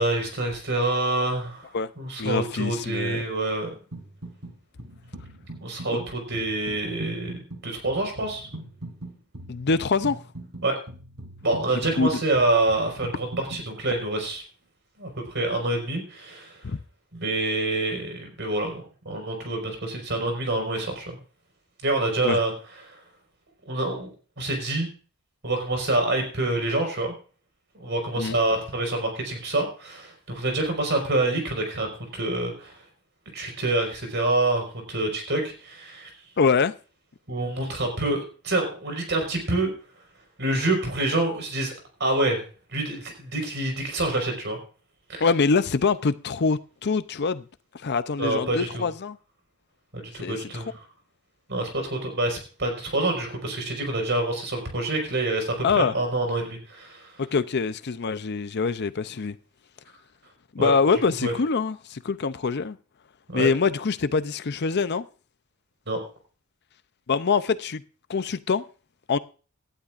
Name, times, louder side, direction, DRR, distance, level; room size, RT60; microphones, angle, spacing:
voice 1, 0.0-1.7 2.0-3.7 5.6-7.4 7.6-8.5 10.6-10.8 11.4-14.4 15.0-16.5 17.1-21.2 21.8-22.5 22.9-23.0 23.7-24.1 24.4-24.9 25.4-27.1 27.8-32.7 33.3-36.1 37.3-39.7 40.4-41.7 42.0-42.4 42.7-44.6 45.1-45.2 48.2-48.9 49.9-50.7 51.5-57.1 60.6-60.7 61.2-61.3 63.3-63.5 65.9-66.0, right 2 dB, 55° right, 4.9 m, -27 dB
voice 2, 2.2-3.2 9.5-10.2 12.0-12.2 16.6-16.8 22.2-22.4 28.2-28.4 36.4-36.7 45.2-47.4 47.7-49.2 50.2-50.6 55.6-56.0 57.2-59.4 60.5-62.8 63.3-65.1 67.1-67.8 68.1-68.6 69.1-69.2, left 4 dB, 50° left, 0.6 m, -24 dB
sound 1, 3.9-4.5 4.8-13.6, right 1 dB, 75° right, 3.3 m, -41 dB
18.0 x 11.5 x 2.5 m
head